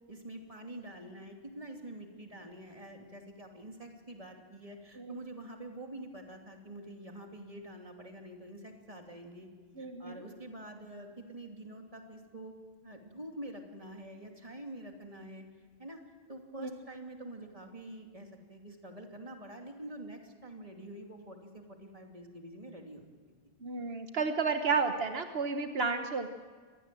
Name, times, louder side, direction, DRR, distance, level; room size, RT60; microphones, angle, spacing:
voice 1, 0.1-9.5 9.8-12.6 12.8-15.4 15.8-16.0 16.3-23.0, right 1 dB, 35° right, 2 dB, 2.9 m, -46 dB
voice 2, 9.8-10.2 16.6-16.7 23.6-26.3, right 4 dB, 75° right, 6 dB, 1.4 m, -32 dB
25.0 x 19.5 x 7.7 m, 1.5 s
omnidirectional pair, 1.0 m